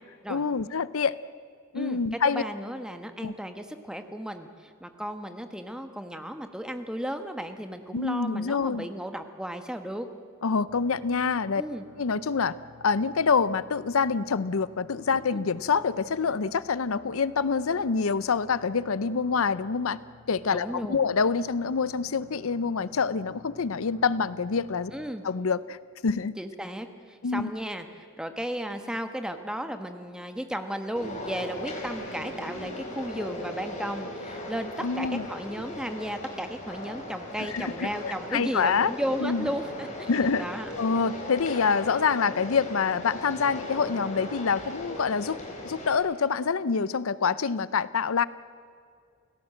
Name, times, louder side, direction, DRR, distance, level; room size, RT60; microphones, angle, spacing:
voice 1, 0.3-1.2 1.7-2.4 3.2-3.3 7.9-8.9 10.4-11.6 12.0-12.6 12.8-20.0 20.3-24.9 25.2-25.8 26.0-26.3 27.2-27.5 34.8-35.3 37.4-38.9 39.2-39.5 40.1-40.5 40.8-45.4 45.6-48.2, left 5 dB, 70° left, 17 dB, 0.6 m, -26 dB
voice 2, 1.7-10.1 11.5-11.8 15.3-15.4 20.5-21.0 24.9-25.2 26.4-40.1 40.4-40.7, equal, 5° right, 7 dB, 1.2 m, -35 dB
sound 1, 10.7-25.1, left 2 dB, 80° right, 5.7 m, -52 dB
sound 2, 31.0-46.0, left 1 dB, 35° left, 4.1 m, -38 dB
29.0 x 17.0 x 7.7 m, 2.3 s
head